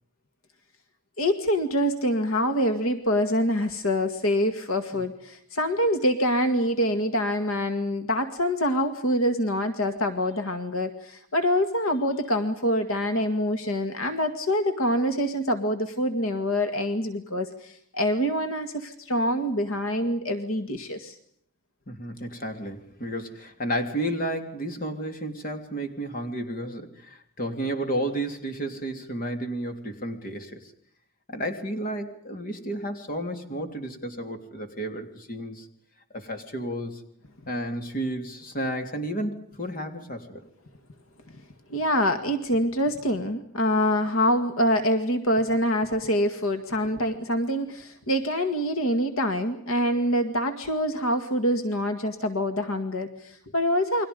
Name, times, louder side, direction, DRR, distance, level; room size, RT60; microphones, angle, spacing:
voice 1, 1.2-21.2 41.7-54.0, equal, 70° left, 8 dB, 2.0 m, -25 dB
voice 2, 21.9-30.7 31.3-35.7 36.1-37.0 37.5-40.4, right 1 dB, 40° left, 6 dB, 3.2 m, -32 dB
29.5 x 23.0 x 5.3 m, 0.67 s
head